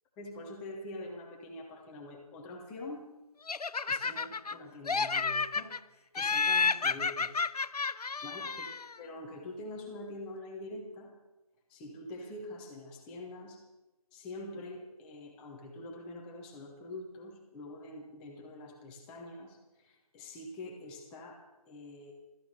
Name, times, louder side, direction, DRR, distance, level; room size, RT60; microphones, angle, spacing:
voice 1, 0.2-3.1 3.9-7.5 8.2-8.7 9.0-11.1 11.7-13.7 14.1-22.1, left 2 dB, 5° left, 1 dB, 0.7 m, -45 dB
Laughter, 3.5-4.6 4.9-5.8 6.2-8.9, left 4 dB, 80° left, 0.6 m, -31 dB
15.5 x 13.5 x 5.7 m, 1.0 s
figure-of-eight pair, 160°, 20 cm